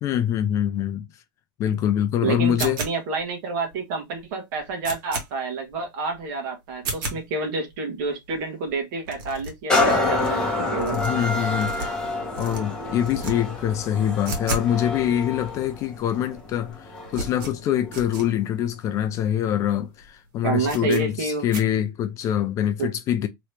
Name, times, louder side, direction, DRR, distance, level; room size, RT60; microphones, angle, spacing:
voice 1, 0.0-1.0 1.6-2.8 10.9-12.0 12.4-23.3, left 10 dB, 25° left, 0.3 m, -24 dB
voice 2, 2.2-11.0 20.4-21.5 22.8-22.9, right 4 dB, 55° right, 1.3 m, -28 dB
sound 1, 2.6-3.2 3.7-3.8 4.2-4.3 4.5-5.3 5.7-5.8 6.1-6.3 6.7-7.2 7.7-7.8 8.0-8.1 8.3-8.4 8.7-8.8 9.0-10.3 10.7-12.1 12.3-12.6 13.0-13.3 13.6-14.7 15.0-15.1 15.7-15.8 16.0-16.4 16.6-18.3 18.7-18.8 19.0-19.1 19.6-19.8 20.0-20.1 20.6-21.0 21.5-21.6, right 2 dB, 70° right, 1.5 m, -33 dB
sound 2, 9.7-17.3 17.9-18.0, left 2 dB, 5° left, 0.9 m, -27 dB
3.0 x 2.8 x 3.1 m
supercardioid pair, 160°, 12 cm